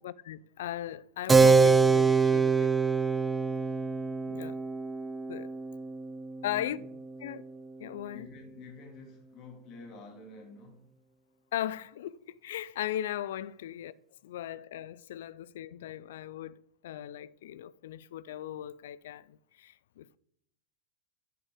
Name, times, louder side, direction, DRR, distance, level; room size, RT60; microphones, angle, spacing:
voice 1, 0.0-2.7 4.3-4.6 5.3-5.5 6.4-6.8 7.2-7.4 7.8-8.3 11.5-13.9 14.2-20.2, left 12 dB, 55° left, 0.4 m, -38 dB
Keyboard (musical), 1.3-7.4, right 4 dB, 10° right, 0.4 m, -25 dB
voice 2, 6.5-6.8 8.1-10.8, left 3 dB, 35° left, 2.3 m, -49 dB
10.5 x 7.5 x 3.7 m
figure-of-eight pair, 90°, 0 cm